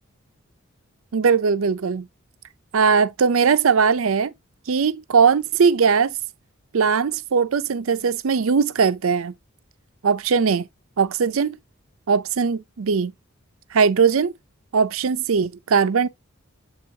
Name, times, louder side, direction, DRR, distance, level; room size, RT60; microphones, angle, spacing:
voice 1, 1.1-2.1 2.7-4.3 4.7-6.2 6.7-9.3 10.0-10.7 11.0-11.6 12.1-13.1 13.7-14.3 14.7-16.1, right 5 dB, 75° right, 0.5 m, -19 dB
7.8 x 4.6 x 2.8 m
head